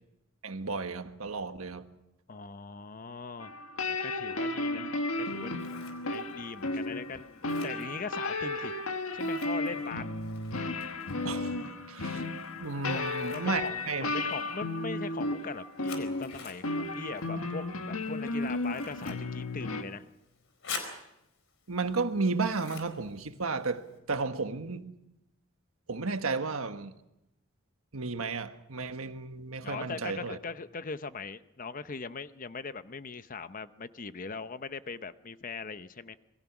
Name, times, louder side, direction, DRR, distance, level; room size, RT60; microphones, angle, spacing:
voice 1, 0.4-1.8 11.2-11.6 11.9-12.2 12.6-14.1 21.7-24.9 25.9-26.9 27.9-30.4, right 4 dB, 90° right, 1.4 m, -33 dB
voice 2, 2.3-3.5 3.9-5.5 6.1-8.7 9.1-10.1 12.9-20.0 29.6-36.2, left 4 dB, 40° left, 0.8 m, -40 dB
sound 1, 3.4-19.8, left 2 dB, 85° left, 1.7 m, -34 dB
Scissors, 5.2-24.0, left 4 dB, 65° left, 4.3 m, -49 dB
27.0 x 21.5 x 6.0 m
head